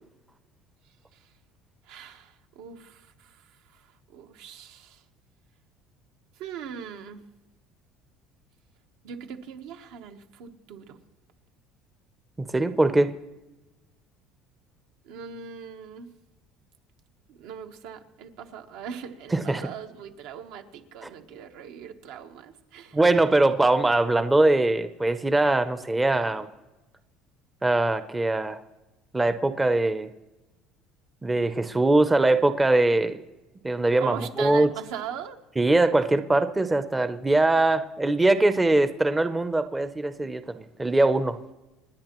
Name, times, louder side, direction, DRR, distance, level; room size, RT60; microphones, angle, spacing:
voice 1, 1.9-3.4 3.7-3.8 4.1-5.0 6.4-7.2 9.0-11.0 15.0-16.1 17.3-23.0 34.0-35.4, right 8 dB, 80° right, 5 dB, 1.2 m, -40 dB
voice 2, 12.4-13.1 19.3-19.6 22.9-26.5 27.6-28.6 29.1-30.1 31.2-33.2 33.6-34.7 35.6-41.4, right 2 dB, 10° right, 10 dB, 0.5 m, -22 dB
27.0 x 10.0 x 3.0 m, 1.1 s
cardioid pair, 145°, 0 cm